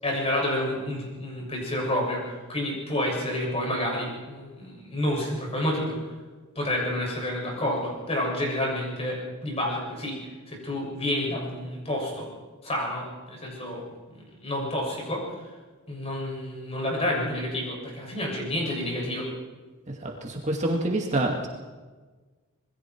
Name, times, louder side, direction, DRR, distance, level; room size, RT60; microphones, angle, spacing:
voice 1, 0.0-6.1 6.6-10.2 10.5-12.3 12.6-13.8 14.1-15.5 15.9-19.3, left 1 dB, 30° left, -2 dB, 7.1 m, -29 dB
voice 2, 19.9-21.5, right 1 dB, 35° right, 0 dB, 2.3 m, -27 dB
26.5 x 21.5 x 4.7 m, 1.3 s
head